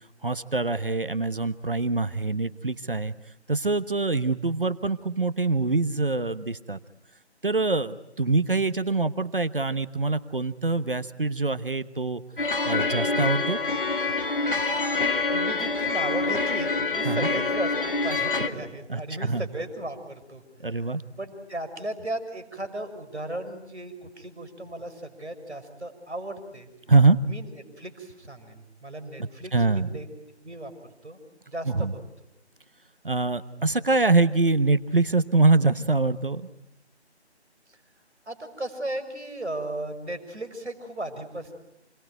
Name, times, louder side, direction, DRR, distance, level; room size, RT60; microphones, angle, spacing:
voice 1, 0.2-3.1 3.5-6.8 7.4-12.2 12.6-13.6 17.0-17.3 18.9-19.4 20.6-21.0 26.9-27.2 29.5-29.9 31.7-31.9 33.0-36.4, right 3 dB, 50° right, 11 dB, 1.1 m, -24 dB
sound 1, 12.4-18.5, left 3 dB, 50° left, 2.1 m, -26 dB
voice 2, 15.3-20.4 20.8-26.7 27.2-30.0 30.4-30.7 31.0-31.2 31.4-32.0 37.7-37.8 38.2-41.5, right 1 dB, ahead, -22 dB, 1.6 m, -36 dB
28.5 x 22.5 x 9.3 m, 0.82 s
figure-of-eight pair, 175°, 34 cm